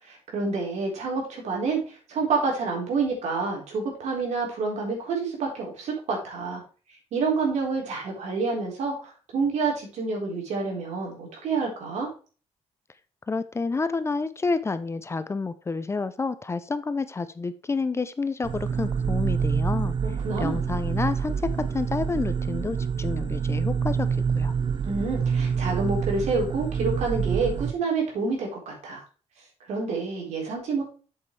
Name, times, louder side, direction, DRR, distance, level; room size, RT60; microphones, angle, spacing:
voice 1, 0.0-6.6 7.1-12.1 20.0-20.6 24.8-29.0 29.7-30.8, right 4 dB, 85° right, 0 dB, 4.1 m, -28 dB
voice 2, 13.3-20.0 20.4-24.1 24.3-24.5, left 4 dB, 25° left, 13 dB, 0.6 m, -29 dB
sound 1, 18.4-27.7, right 6 dB, 45° right, 0.4 m, -27 dB
7.7 x 7.7 x 3.3 m, 0.36 s
cardioid pair, 130°, 11 cm